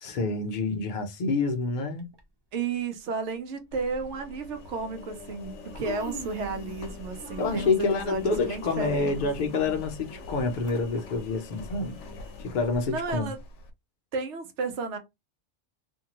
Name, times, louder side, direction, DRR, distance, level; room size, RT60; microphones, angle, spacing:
voice 1, 0.0-2.1 7.4-12.0 12.4-13.3, left 3 dB, 50° left, 0.7 m, -28 dB
Human voice, 2.0-2.2 3.2-3.3 3.9-4.1 5.1-5.2 5.5-6.9 7.2-10.7 11.1-11.2 12.1-12.2, right 2 dB, 35° right, 0.4 m, -43 dB
voice 2, 2.5-9.2 12.9-13.4 14.1-15.0, right 4 dB, 80° right, 1.0 m, -33 dB
Engine, 3.7-13.7, left 3 dB, 85° left, 0.9 m, -43 dB
2.6 x 2.2 x 2.9 m
omnidirectional pair, 1.2 m